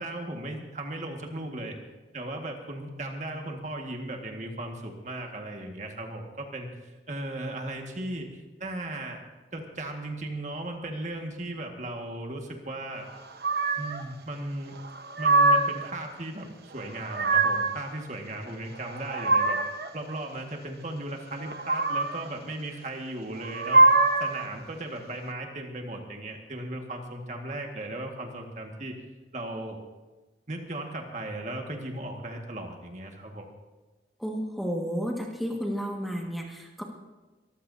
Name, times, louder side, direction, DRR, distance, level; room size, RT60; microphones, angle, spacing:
voice 1, 0.0-1.8 2.1-9.2 9.5-13.1 13.8-14.8 15.2-16.5 16.7-19.6 19.9-23.9 24.2-29.0 29.3-29.8 30.5-33.4, right 1 dB, 40° right, 2 dB, 1.8 m, -36 dB
sound 1, 13.4-14.0 14.8-15.9 16.8-17.8 18.8-19.9 21.4-22.3 23.4-24.4, right 3 dB, 60° right, 1.1 m, -23 dB
voice 2, 34.2-36.8, equal, ahead, -1 dB, 1.7 m, -32 dB
23.5 x 15.0 x 2.8 m, 1.2 s
head